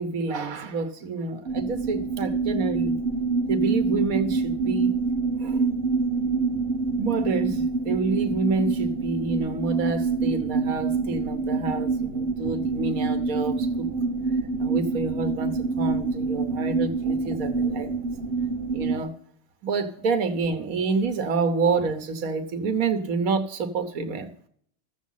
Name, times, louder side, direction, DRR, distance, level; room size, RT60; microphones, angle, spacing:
voice 1, 0.0-3.0 3.5-4.9 5.4-5.7 7.0-13.9 14.6-17.9 18.7-19.1 19.6-24.3, right 4 dB, 90° right, 8 dB, 1.4 m, -28 dB
sound 1, 1.5-19.0, right 4 dB, 45° right, 1.3 m, -26 dB
14.0 x 7.3 x 5.5 m, 0.63 s
omnidirectional pair, 1.4 m